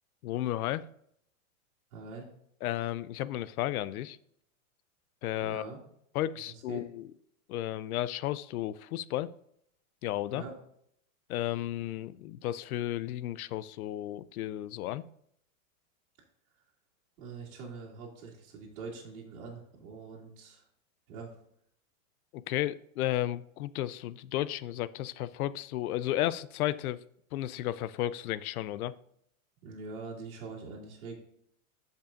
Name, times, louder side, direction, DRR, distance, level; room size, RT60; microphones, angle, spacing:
voice 1, 0.2-0.9 2.6-4.2 5.2-5.6 6.1-7.1 7.5-9.3 10.0-10.4 11.3-15.0 22.3-27.0 27.3-28.9, left 13 dB, 85° left, 17 dB, 0.5 m, -33 dB
voice 2, 1.9-2.3 5.4-5.8 6.4-6.8 10.3-10.6 17.2-20.6 21.1-21.4 29.6-31.2, right 4 dB, 65° right, -7 dB, 2.6 m, -44 dB
13.5 x 5.4 x 2.6 m, 0.70 s
supercardioid pair, 170°, 43 cm